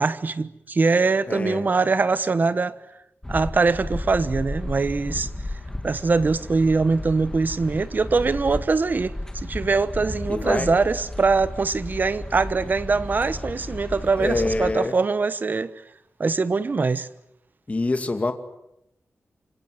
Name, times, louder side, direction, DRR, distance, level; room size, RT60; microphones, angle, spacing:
voice 1, 0.0-2.8 3.3-5.3 5.8-15.7 16.2-17.1, right 4 dB, 45° right, 1.2 m, -22 dB
voice 2, 1.3-1.7 10.3-10.7 14.2-15.0 17.7-18.3, left 2 dB, 30° left, 2.3 m, -25 dB
sound 1, 3.2-14.7, left 1 dB, 10° left, 2.8 m, -34 dB
28.0 x 25.5 x 8.0 m
wide cardioid pair, 120°, 4 cm